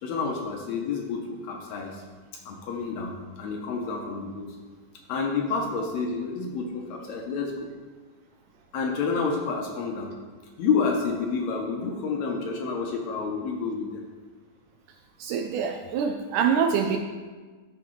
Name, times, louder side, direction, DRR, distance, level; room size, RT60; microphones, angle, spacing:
voice 1, 0.0-2.0 2.5-4.6 5.1-7.6 8.7-10.1 10.6-14.0, left 5 dB, 75° left, 1 dB, 1.8 m, -29 dB
voice 2, 15.2-17.0, right 7 dB, 85° right, 4 dB, 2.1 m, -25 dB
13.0 x 4.8 x 3.1 m, 1.4 s
omnidirectional pair, 3.6 m